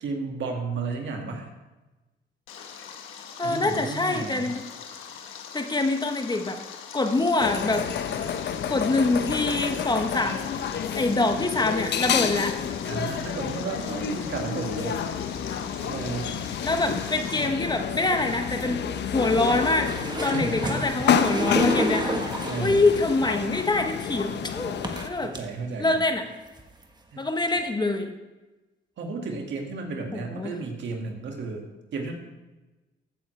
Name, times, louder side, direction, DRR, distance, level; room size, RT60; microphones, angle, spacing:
voice 1, 0.0-1.5 3.4-4.5 12.9-15.0 15.8-16.4 20.2-20.6 21.0-21.1 21.4-21.5 22.1-22.8 25.2-26.0 27.1-27.2 29.0-31.7 31.9-32.1, right 4 dB, 65° right, 2 dB, 2.1 m, -33 dB
Stream, 2.5-17.5, left 7 dB, 90° left, 1.3 m, -42 dB
voice 2, 3.4-4.7 5.5-6.6 6.9-7.9 8.7-10.4 11.0-12.5 16.6-18.8 19.1-19.9 20.2-22.2 22.6-24.8 25.0-25.3 25.8-26.2 27.2-28.1 30.1-30.5, left 2 dB, 20° left, 6 dB, 1.1 m, -25 dB
sound 1, 7.4-25.1, left 7 dB, 60° left, 0.8 m, -29 dB
sound 2, 19.8-22.8 23.8-23.9 24.8-25.4 26.0-26.1 26.5-26.8 27.6-27.7, right 1 dB, 20° right, 1.4 m, -30 dB
14.5 x 9.2 x 3.4 m, 1.1 s
cardioid pair, 90°, 20 cm